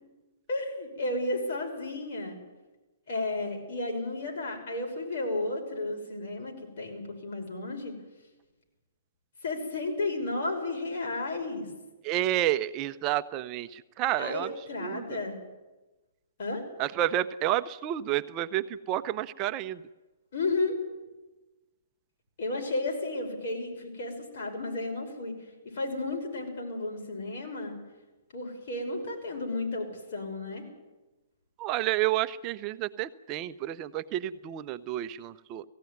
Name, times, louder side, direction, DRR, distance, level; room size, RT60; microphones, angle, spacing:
voice 1, 0.5-2.4 3.1-8.0 9.4-11.7 14.2-15.4 16.4-16.7 20.3-20.8 22.4-25.4 25.6-27.8 28.3-30.7, left 2 dB, 60° left, 2 dB, 6.1 m, -33 dB
voice 2, 12.0-14.5 14.8-15.2 16.8-19.8 31.6-35.6, right 13 dB, 30° right, 11 dB, 0.6 m, -30 dB
18.5 x 16.0 x 9.5 m, 1.1 s
hypercardioid pair, 140°, 0 cm